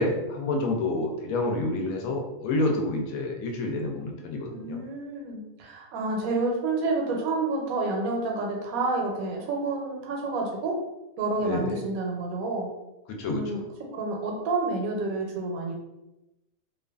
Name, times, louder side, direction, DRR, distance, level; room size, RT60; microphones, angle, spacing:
voice 1, 0.0-4.8 11.4-11.8 13.1-13.6, left 2 dB, 80° left, 2 dB, 1.0 m, -28 dB
voice 2, 4.5-10.8 11.2-12.7 13.2-13.6 13.9-15.7, right 3 dB, 85° right, 0 dB, 1.1 m, -29 dB
2.5 x 2.4 x 2.3 m, 0.95 s
omnidirectional pair, 1.5 m